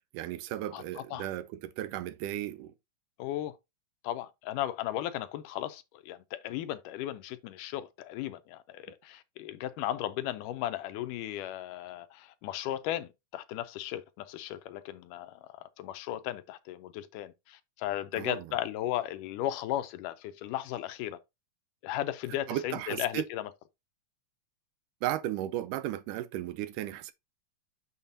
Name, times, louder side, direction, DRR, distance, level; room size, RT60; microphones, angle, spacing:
voice 1, 0.1-2.7 18.2-18.4 22.5-23.2 25.0-27.1, right 13 dB, 80° right, 2.0 m, -35 dB
voice 2, 0.7-1.3 3.2-3.6 4.0-21.2 21.8-23.5, left 13 dB, 80° left, 2.1 m, -36 dB
7.2 x 6.6 x 2.7 m
omnidirectional pair, 3.9 m